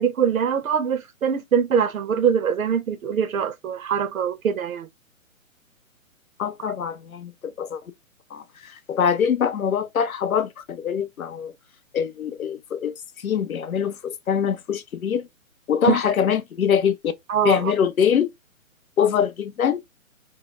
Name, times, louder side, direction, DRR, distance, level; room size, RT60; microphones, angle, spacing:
voice 1, 0.0-4.9 6.6-6.7 15.9-16.0 17.3-17.7, right 7 dB, 80° right, 0.6 m, -23 dB
voice 2, 6.4-7.8 8.3-11.5 11.9-15.3 15.7-17.1 17.4-18.3 19.0-19.8, left 8 dB, 90° left, 0.6 m, -23 dB
2.2 x 2.0 x 2.8 m
figure-of-eight pair, 140°, 41 cm